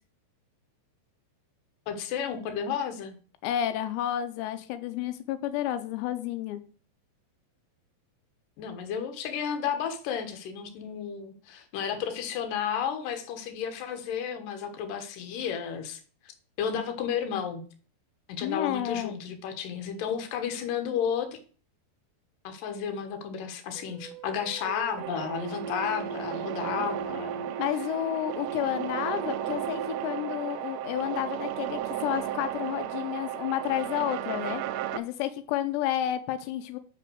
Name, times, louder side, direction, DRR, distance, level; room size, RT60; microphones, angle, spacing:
voice 1, 1.9-3.2 8.6-16.0 16.6-17.6 18.3-21.4 22.4-27.5, left 7 dB, 65° left, 6 dB, 2.5 m, -32 dB
voice 2, 3.4-6.6 18.4-19.1 27.6-34.6 34.9-36.8, left 12 dB, 85° left, 10 dB, 2.7 m, -31 dB
sound 1, 23.7-31.1, right 5 dB, 60° right, 1.6 m, -40 dB
sound 2, 25.0-35.0, right 12 dB, 85° right, 2.8 m, -34 dB
5.9 x 5.8 x 6.2 m, 0.41 s
omnidirectional pair, 4.9 m